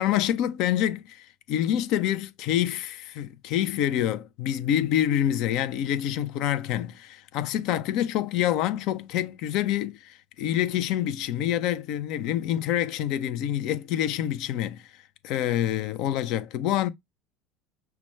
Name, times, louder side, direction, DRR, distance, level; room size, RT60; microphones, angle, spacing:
voice 1, 0.0-14.9 15.2-16.9, left 11 dB, 60° left, 0.5 m, -27 dB
5.8 x 2.2 x 3.1 m
hypercardioid pair, 80°, 0 cm